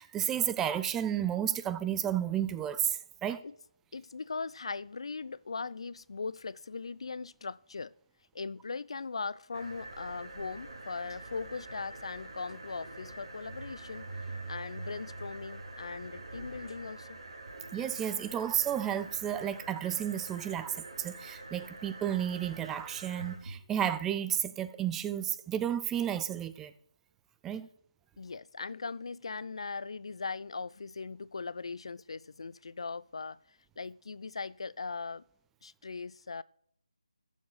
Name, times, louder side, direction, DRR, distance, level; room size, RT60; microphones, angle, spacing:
voice 1, 0.0-3.4 17.7-26.7 27.4-27.7, right 10 dB, 10° right, 0.4 m, -32 dB
voice 2, 3.9-7.9 8.3-14.1 14.5-17.2 28.2-33.4 33.8-35.2 35.6-36.4, left 4 dB, 55° left, 0.4 m, -39 dB
sound 1, 9.5-23.6, right 2 dB, 55° right, 3.5 m, -45 dB
13.0 x 7.2 x 6.4 m
figure-of-eight pair, 155°, 4 cm